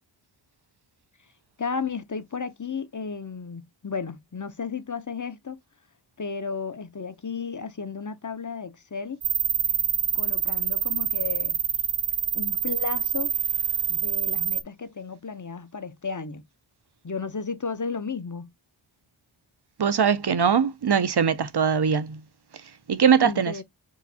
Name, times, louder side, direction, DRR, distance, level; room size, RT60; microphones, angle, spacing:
voice 1, 1.6-5.6 6.2-9.2 10.1-11.6 12.3-13.3 13.9-16.4 17.0-18.5 23.2-23.6, left 5 dB, 40° left, 0.9 m, -33 dB
sound 1, 9.2-14.6, right 9 dB, 85° right, 0.7 m, -26 dB
voice 2, 19.8-22.2 22.9-23.5, right 7 dB, 55° right, 0.7 m, -21 dB
4.8 x 3.2 x 2.7 m
wide cardioid pair, 40°, 47 cm